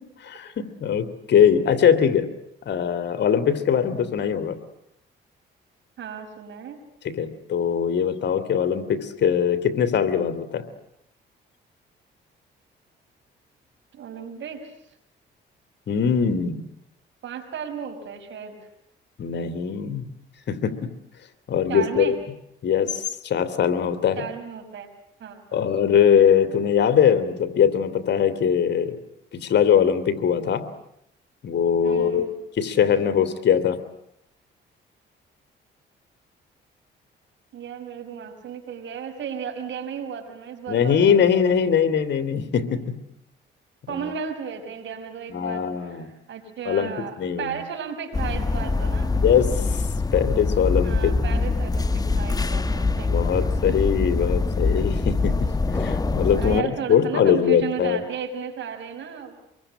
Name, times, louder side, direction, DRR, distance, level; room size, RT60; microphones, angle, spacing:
voice 1, 0.2-2.3 2.6-4.6 7.0-10.6 15.9-16.6 19.2-20.1 20.5-20.7 21.5-22.1 22.6-24.2 25.5-29.0 29.4-30.6 31.4-32.3 32.6-33.8 40.7-42.8 43.9-44.1 45.3-46.1 46.6-46.9 47.2-47.6 49.2-49.5 50.1-51.1 53.0-55.3 55.7-58.0, left 8 dB, 60° left, 11 dB, 2.6 m, -21 dB
voice 2, 6.0-6.8 13.9-14.7 17.2-18.7 21.7-22.2 24.2-24.9 25.2-25.7 31.8-32.3 37.5-41.3 43.9-49.1 50.8-53.8 56.3-59.4, right 7 dB, 70° right, 7 dB, 5.5 m, -34 dB
sound 1, 48.1-56.6, left 3 dB, 20° left, 1.1 m, -24 dB
25.5 x 23.0 x 10.0 m, 0.79 s
cardioid pair, 90°, 20 cm